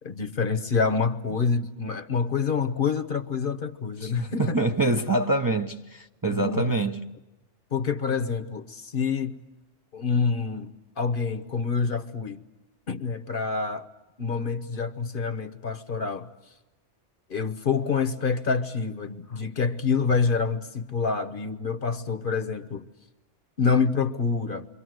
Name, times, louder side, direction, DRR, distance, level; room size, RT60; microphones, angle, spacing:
voice 1, 0.0-4.6 6.2-6.6 7.7-9.4 9.9-12.4 12.9-13.9 14.2-16.3 17.3-22.9 23.6-24.7, left 5 dB, 50° left, 1.2 m, -27 dB
voice 2, 4.0-7.0, right 2 dB, 20° right, 0.8 m, -25 dB
28.5 x 24.5 x 7.8 m
omnidirectional pair, 1.2 m